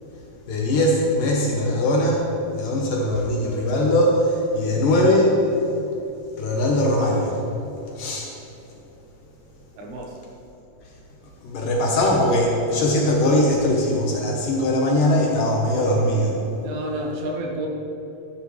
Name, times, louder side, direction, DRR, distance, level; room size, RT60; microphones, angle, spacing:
voice 1, 0.5-2.2 2.5-5.4 6.4-7.4 8.0-8.3 11.4-16.4, left 1 dB, 70° left, -1 dB, 2.4 m, -20 dB
voice 2, 9.8-10.2 16.6-17.7, right 1 dB, 75° right, 1 dB, 3.1 m, -30 dB
13.0 x 10.0 x 3.3 m, 2.9 s
omnidirectional pair, 4.6 m